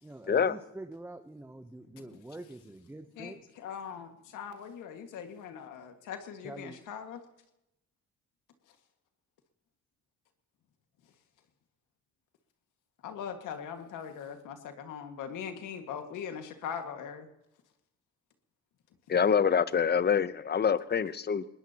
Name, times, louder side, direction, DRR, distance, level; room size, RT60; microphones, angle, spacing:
voice 1, 0.0-3.4 6.4-6.8, right 2 dB, 5° right, 8 dB, 0.8 m, -45 dB
voice 2, 3.2-7.2 13.0-17.3, left 7 dB, 90° left, 6 dB, 1.9 m, -41 dB
voice 3, 19.1-21.5, left 7 dB, 35° left, 15 dB, 0.8 m, -26 dB
21.0 x 20.0 x 2.9 m, 0.86 s
cardioid pair, 90°, 30 cm